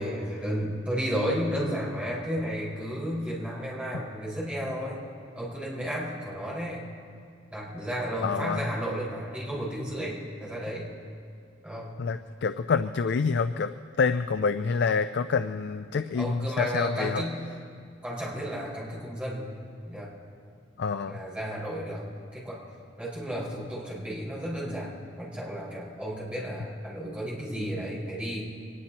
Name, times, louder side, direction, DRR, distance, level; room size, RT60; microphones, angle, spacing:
voice 1, 0.0-5.0 5.3-6.8 7.5-10.9 11.6-12.0 16.1-17.4 18.0-19.5 19.8-20.1 21.1-22.0 22.3-22.6 23.0-28.4, equal, 5° right, -7 dB, 5.1 m, -33 dB
voice 2, 8.2-8.6 12.0-17.2 20.8-21.2, left 5 dB, 60° left, 10 dB, 0.4 m, -27 dB
24.5 x 20.0 x 3.0 m, 2.2 s
head